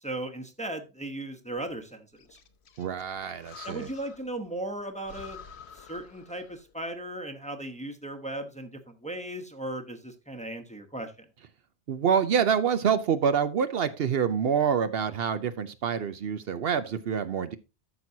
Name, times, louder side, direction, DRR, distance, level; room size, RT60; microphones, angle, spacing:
voice 1, 0.0-2.2 3.6-5.4 5.7-11.1, right 1 dB, 5° left, 5 dB, 0.9 m, -37 dB
Breathing, 2.2-4.4 4.7-4.8 5.0-6.7, left 6 dB, 75° left, 1.1 m, -48 dB
voice 2, 2.8-3.9 11.9-17.6, right 7 dB, 65° right, 11 dB, 0.9 m, -26 dB
13.5 x 6.1 x 2.7 m, 0.28 s
omnidirectional pair, 1.1 m